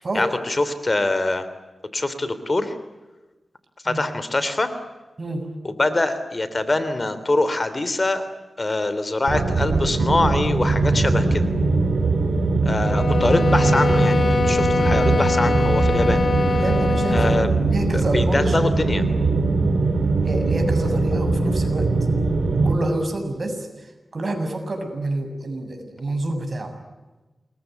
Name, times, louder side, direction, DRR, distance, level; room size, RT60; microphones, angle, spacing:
voice 1, 0.1-1.4 1.9-2.7 3.8-4.7 5.6-8.3 8.6-11.4 12.6-16.6 17.1-17.5 17.9-19.0, left 2 dB, 35° left, 12 dB, 3.1 m, -24 dB
sound 1, 9.3-22.7, right 3 dB, 80° right, 4.4 m, -21 dB
sound 2, 12.8-17.6, left 4 dB, 60° left, 1.0 m, -23 dB
voice 2, 16.6-18.6 20.2-21.9 22.6-23.7 24.1-26.7, right 2 dB, 50° right, 5 dB, 7.4 m, -28 dB
28.5 x 22.5 x 9.2 m, 1.2 s
wide cardioid pair, 75°, 0 cm